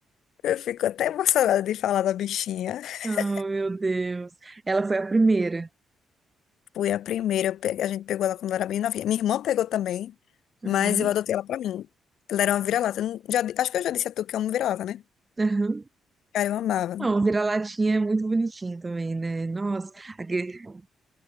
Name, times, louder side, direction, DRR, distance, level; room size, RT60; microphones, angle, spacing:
voice 1, 0.4-3.3 6.8-10.1 10.6-11.9 12.3-15.0 16.3-17.1, left 11 dB, 75° left, 1.8 m, -26 dB
voice 2, 3.0-5.7 10.6-11.1 15.4-15.8 17.0-20.8, right 3 dB, 25° right, 1.8 m, -26 dB
cardioid pair, 90°, 0 cm